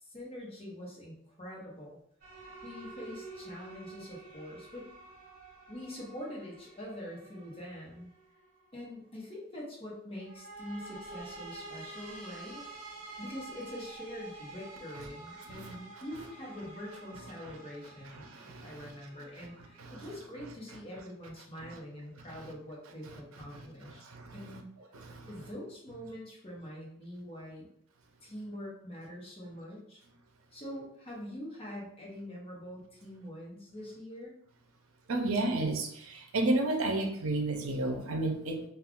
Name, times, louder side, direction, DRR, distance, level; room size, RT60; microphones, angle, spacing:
voice 1, 0.0-2.0 2.6-4.9 5.7-8.1 8.7-12.6 13.2-24.0 24.3-24.7 25.3-27.7 28.2-30.0 30.5-34.4, left 1 dB, 30° left, -4 dB, 0.8 m, -44 dB
sound 1, 2.2-8.7 10.2-20.1, right 2 dB, 45° right, 1.1 m, -49 dB
voice 2, 18.1-18.9 19.8-20.0 21.6-21.7 22.3-22.5 23.5-24.3 24.9-25.3 35.1-38.6, right 2 dB, 80° right, 4 dB, 0.5 m, -32 dB
2.3 x 2.3 x 3.6 m, 0.70 s
head